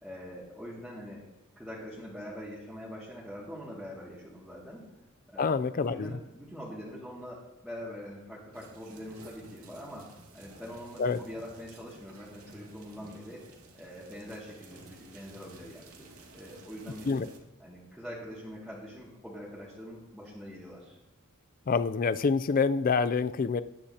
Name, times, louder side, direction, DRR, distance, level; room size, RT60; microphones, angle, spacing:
voice 1, 0.0-1.2 1.6-4.8 5.3-13.4 13.7-15.8 16.3-17.2 17.6-21.0, equal, ahead, -9 dB, 2.2 m, -44 dB
voice 2, 5.4-6.1 11.0-11.2 17.1-17.3 21.7-23.6, left 5 dB, 40° left, 13 dB, 0.4 m, -27 dB
sound 1, 8.5-17.4, right 2 dB, 80° right, 2.3 m, -53 dB
19.5 x 10.0 x 2.8 m, 0.98 s
head